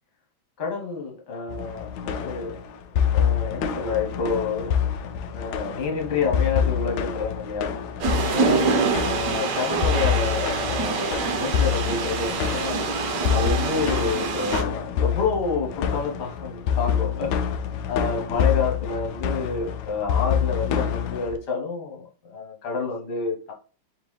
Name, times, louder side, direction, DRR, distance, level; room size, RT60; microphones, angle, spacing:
voice 1, 0.6-2.5 3.1-4.7 5.3-12.8 13.3-17.3 17.9-23.5, left 4 dB, 60° left, 1 dB, 1.6 m, -29 dB
sound 1, 1.5-21.4, left 8 dB, 75° left, 0.9 m, -27 dB
sound 2, 8.0-14.6, right 4 dB, 65° right, 1.3 m, -25 dB
3.6 x 3.5 x 3.1 m, 0.37 s
omnidirectional pair, 2.2 m